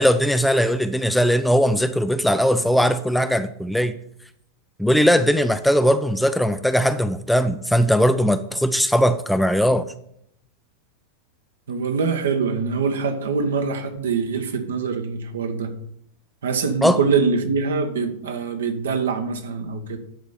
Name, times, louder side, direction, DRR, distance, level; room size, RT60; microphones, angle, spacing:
voice 1, 0.0-3.9 4.8-9.9 16.8-17.0, equal, ahead, 10 dB, 0.5 m, -19 dB
voice 2, 11.7-15.8 16.4-20.0, right 5 dB, 65° right, 7 dB, 1.1 m, -24 dB
10.5 x 4.1 x 6.9 m, 0.72 s
figure-of-eight pair, 90°, 0 cm